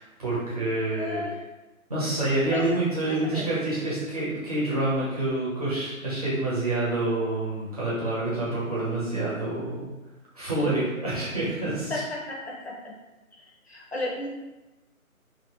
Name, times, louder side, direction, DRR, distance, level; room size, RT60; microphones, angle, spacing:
voice 1, 0.0-1.2 1.9-9.9 10.3-12.0, right 2 dB, 25° right, -9 dB, 1.0 m, -27 dB
voice 2, 1.0-1.4 2.5-2.6 3.0-3.5 11.9-12.9 13.7-14.3, left 1 dB, 50° left, -2 dB, 0.7 m, -34 dB
2.7 x 2.7 x 3.0 m, 1.1 s
figure-of-eight pair, 160°, 42 cm